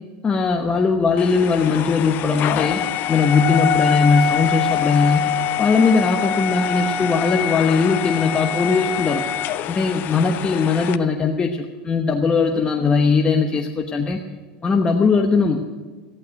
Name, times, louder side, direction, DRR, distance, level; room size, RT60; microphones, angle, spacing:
voice 1, 0.2-2.8 3.1-5.3 5.6-9.2 9.7-14.2 14.6-15.6, left 4 dB, 20° left, 2 dB, 1.0 m, -19 dB
sound 1, 1.2-11.0, left 8 dB, 45° left, 0.7 m, -24 dB
14.5 x 11.0 x 6.5 m, 1.4 s
supercardioid pair, 120°, 5 cm